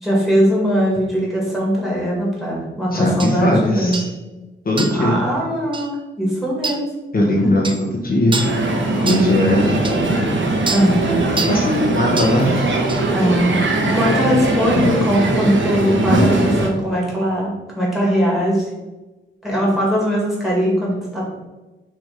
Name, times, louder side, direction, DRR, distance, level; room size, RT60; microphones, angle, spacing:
voice 1, 0.0-4.0 4.9-6.9 7.4-7.5 8.9-9.4 10.7-11.1 13.1-18.7 19.4-21.3, equal, ahead, -4 dB, 2.2 m, -20 dB
voice 2, 2.9-4.1 4.6-5.2 7.1-8.5 8.9-9.9 11.0-11.1 11.5-12.8, left 1 dB, 45° left, -2 dB, 0.9 m, -19 dB
sound 1, 3.2-3.3 3.9-4.1 4.8-5.1 5.7-5.9 6.6-6.8 7.6-7.8 8.3-8.6 9.1-9.3 9.8-10.0 10.7-10.9 11.4-11.6 12.2-12.4 12.9-13.0, right 3 dB, 25° right, 0.4 m, -26 dB
Crowd, 8.4-16.7, right 2 dB, 65° right, 1.2 m, -20 dB
6.3 x 3.5 x 5.0 m, 1.1 s
wide cardioid pair, 170°, 20 cm